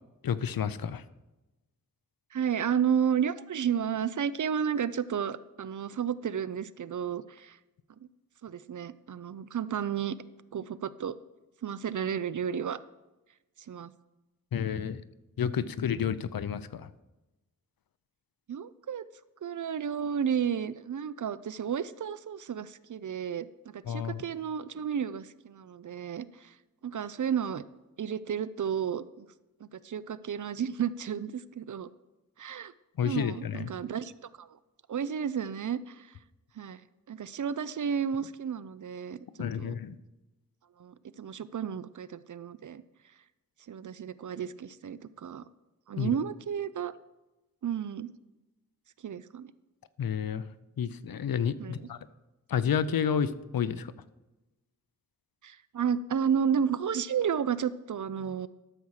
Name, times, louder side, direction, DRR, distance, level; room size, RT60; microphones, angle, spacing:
voice 1, 0.2-1.0 14.5-15.0 15.4-16.9 23.9-24.2 33.0-33.7 39.4-40.0 46.0-46.1 50.0-50.4 50.8-52.0 52.5-53.9, left 7 dB, 85° left, 14 dB, 0.6 m, -30 dB
voice 2, 2.3-7.6 8.4-10.2 10.5-11.2 11.6-12.8 13.7-13.9 18.5-19.0 19.4-26.5 26.8-27.6 28.0-29.3 29.6-31.9 32.4-32.7 33.0-34.1 34.4-34.5 34.9-36.1 36.6-36.8 37.1-39.2 39.6-39.8 40.8-42.8 43.7-45.5 45.9-46.9 47.6-48.1 49.0-49.5 51.6-51.9 55.4-58.5, right 8 dB, 60° right, 16 dB, 0.5 m, -32 dB
12.5 x 7.2 x 4.8 m, 1.0 s
wide cardioid pair, 75°, 34 cm